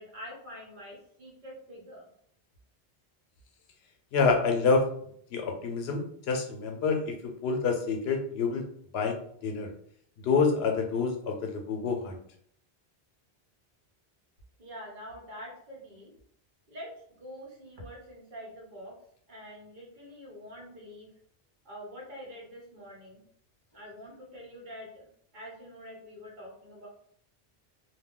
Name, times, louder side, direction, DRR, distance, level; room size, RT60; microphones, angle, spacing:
voice 1, 0.0-2.1 14.6-16.1 16.7-16.9 17.2-18.9 19.3-21.1 21.6-23.2 23.7-25.1 25.3-26.9, equal, 50° right, -3 dB, 1.0 m, -45 dB
voice 2, 4.1-4.9 5.3-8.6 8.9-9.7 10.2-12.2, left 4 dB, 80° left, 3 dB, 0.8 m, -27 dB
2.3 x 2.2 x 3.6 m, 0.65 s
omnidirectional pair, 1.1 m